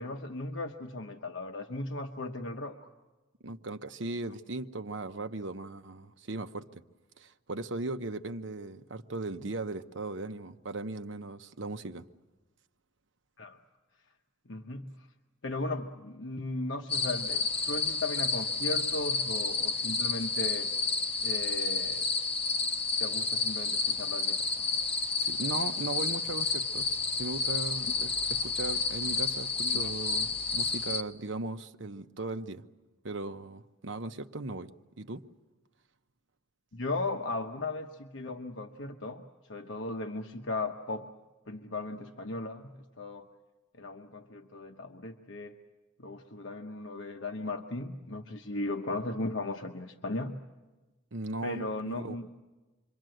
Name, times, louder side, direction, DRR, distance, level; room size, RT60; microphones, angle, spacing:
voice 1, 0.0-2.9 13.4-13.6 14.5-15.1 15.4-20.7 21.2-22.1 23.0-24.7 29.6-29.9 36.7-39.2 39.5-41.1 41.5-43.3 43.7-45.6 46.0-50.4 51.4-52.3, left 2 dB, 75° left, 1.1 m, -37 dB
voice 2, 3.4-6.8 7.2-12.0 25.2-32.6 33.0-34.7 35.0-35.2 51.1-52.2, right 2 dB, 70° right, 1.0 m, -38 dB
sound 1, 16.9-31.0, left 4 dB, 30° left, 1.3 m, -30 dB
27.0 x 23.5 x 7.8 m
head